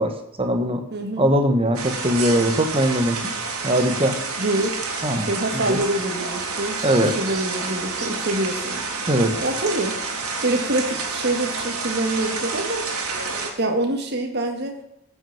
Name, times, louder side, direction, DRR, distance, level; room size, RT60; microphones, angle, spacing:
voice 1, 0.0-0.8 1.2-3.2 3.6-4.2 5.0-5.3 5.5-5.8 6.8-7.2 9.1-9.4, equal, 25° right, 6 dB, 1.5 m, -21 dB
voice 2, 0.9-1.3 4.4-4.8 5.1-6.8 7.2-8.9 9.4-12.8 13.6-14.8, right 1 dB, 50° right, 3 dB, 1.8 m, -25 dB
sound 1, 1.7-13.5, right 4 dB, 75° right, 2.7 m, -29 dB
15.0 x 6.2 x 7.3 m, 0.85 s
head